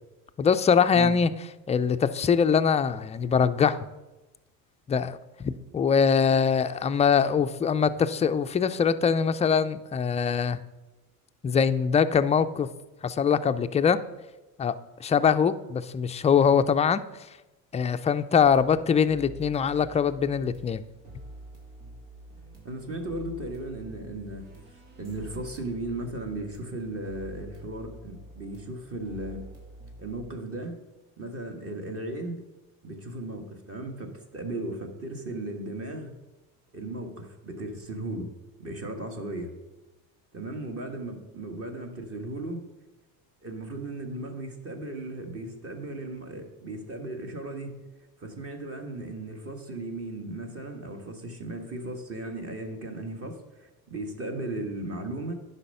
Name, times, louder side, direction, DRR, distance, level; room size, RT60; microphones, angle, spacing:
voice 1, 0.4-1.3 1.7-3.8 4.9-10.6 11.4-12.7 13.0-14.0 14.6-14.7 15.0-17.0 17.7-20.8, left 6 dB, 15° left, 10 dB, 0.3 m, -23 dB
sound 1, 18.4-30.3, right 2 dB, 80° right, 2.4 m, -47 dB
voice 2, 22.6-24.5 24.9-29.4 30.0-30.8 31.2-32.4 32.8-36.1 36.7-38.3 38.6-39.5 40.3-42.7 43.4-47.8 48.2-55.3, right 2 dB, 35° right, 4 dB, 1.5 m, -36 dB
9.9 x 5.6 x 5.5 m, 1.1 s
supercardioid pair, 90°, 41 cm